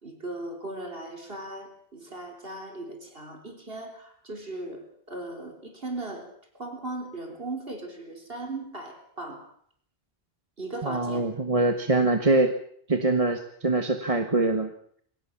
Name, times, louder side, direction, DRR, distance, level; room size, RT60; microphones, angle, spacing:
voice 1, 0.0-6.3 6.5-9.5 10.6-11.3, right 2 dB, 65° right, 4 dB, 4.2 m, -38 dB
voice 2, 10.8-12.5 12.9-14.7, right 2 dB, 35° right, 7 dB, 1.5 m, -24 dB
23.0 x 18.0 x 7.3 m, 0.63 s
omnidirectional pair, 1.0 m